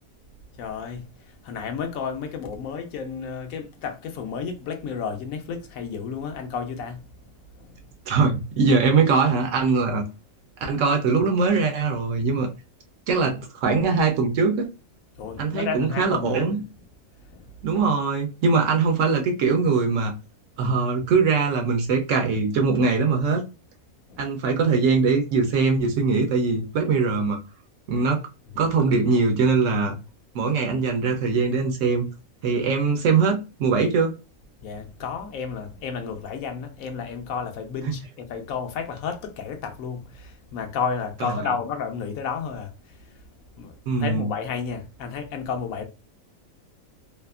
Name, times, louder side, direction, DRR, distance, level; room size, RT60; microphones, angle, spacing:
voice 1, 0.6-7.1 7.6-7.8 15.2-16.5 17.3-17.5 24.1-24.2 34.6-43.2 43.6-45.9, left 6 dB, 75° left, 1.0 m, -32 dB
voice 2, 8.1-10.0 10.6-12.5 13.1-14.7 15.4-16.6 17.6-20.1 20.6-23.5 24.2-27.4 27.9-28.2 28.6-30.0 30.3-32.1 32.4-34.1 37.9-38.0 41.2-41.4 43.9-44.3, right 4 dB, 70° right, 0.9 m, -22 dB
2.8 x 2.4 x 2.3 m
omnidirectional pair, 1.5 m